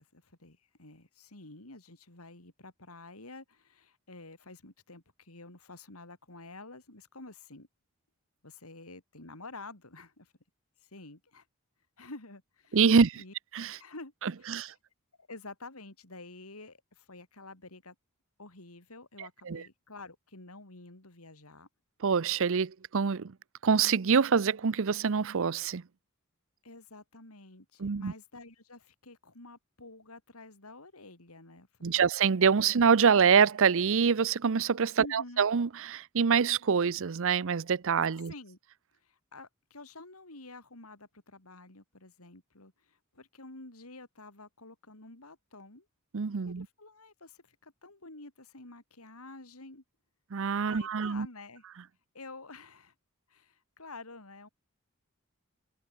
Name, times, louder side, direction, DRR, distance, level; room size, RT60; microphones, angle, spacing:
voice 1, 0.0-7.7 8.4-10.3 10.8-11.5 12.0-12.8 13.2-13.3 13.8-14.6 15.2-17.9 18.4-21.7 26.6-32.0 35.0-35.4 38.3-38.6 39.0-45.9 46.5-49.8 50.6-51.6 52.1-52.9 53.3-54.5, left 2 dB, 90° left, 4.5 m, -49 dB
voice 2, 12.7-13.2 13.5-13.8 14.5-14.7 19.5-19.6 22.0-23.3 23.6-25.8 27.8-28.1 31.8-38.3 46.1-46.7 50.3-51.3, right 6 dB, 65° right, 0.6 m, -25 dB
head